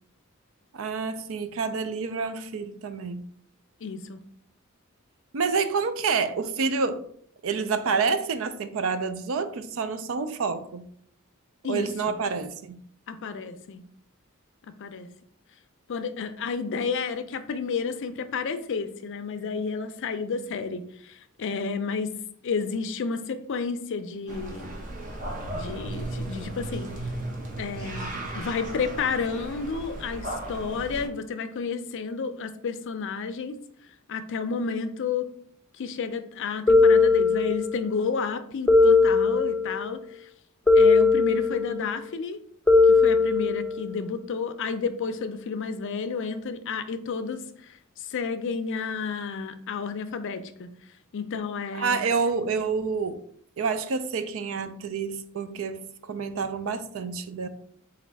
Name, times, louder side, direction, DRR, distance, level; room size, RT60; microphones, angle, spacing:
voice 1, 0.7-3.2 5.3-7.0 7.4-10.9 11.7-12.8 51.7-53.2 53.6-57.5, right 5 dB, 70° right, 0.4 m, -28 dB
voice 2, 3.8-4.2 11.6-12.2 13.1-13.8 14.8-15.1 15.9-22.1 22.4-24.8 25.5-26.9 27.6-33.6 34.1-35.3 35.8-40.3 40.7-42.4 42.9-50.7 51.1-52.0, left 5 dB, 60° left, 0.4 m, -31 dB
sound 1, 24.3-31.1, right 1 dB, 40° right, 0.8 m, -35 dB
sound 2, 36.7-37.8 38.7-39.9 40.7-41.8 42.7-43.9, left 4 dB, 5° left, 0.6 m, -19 dB
4.1 x 2.5 x 4.5 m
head